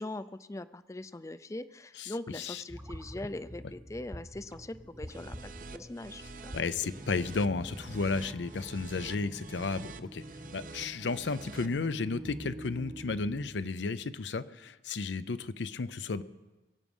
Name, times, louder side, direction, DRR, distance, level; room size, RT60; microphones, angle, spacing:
voice 1, 0.0-6.5, left 2 dB, 15° left, 14 dB, 0.4 m, -41 dB
voice 2, 2.0-2.6 6.5-10.2 10.5-16.2, left 4 dB, 90° left, 14 dB, 0.6 m, -33 dB
sound 1, 2.7-13.5, equal, 15° right, 0.9 m, -46 dB
sound 2, 5.0-11.7, right 4 dB, 50° right, 0.6 m, -48 dB
23.0 x 8.3 x 5.5 m, 1.1 s
head